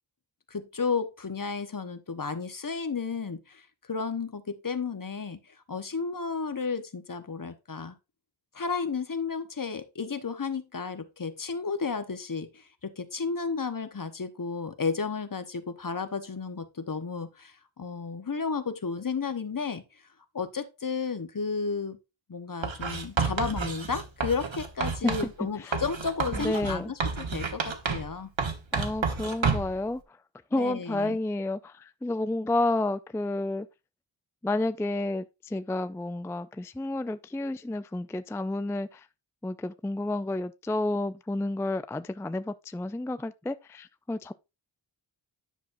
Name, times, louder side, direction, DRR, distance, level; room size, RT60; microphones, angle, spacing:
voice 1, 0.5-5.4 5.7-7.9 8.5-19.8 20.3-22.0 22.3-28.3 30.5-31.2, left 5 dB, 45° left, 1.0 m, -33 dB
Writing, 22.6-25.3 25.7-28.1 28.4-29.8, right 5 dB, 80° right, 1.3 m, -30 dB
voice 2, 26.3-26.9 28.7-30.2 30.5-33.7 34.4-39.1 39.4-44.3, left 2 dB, 5° left, 0.3 m, -31 dB
10.0 x 6.1 x 2.6 m
wide cardioid pair, 75°, 45 cm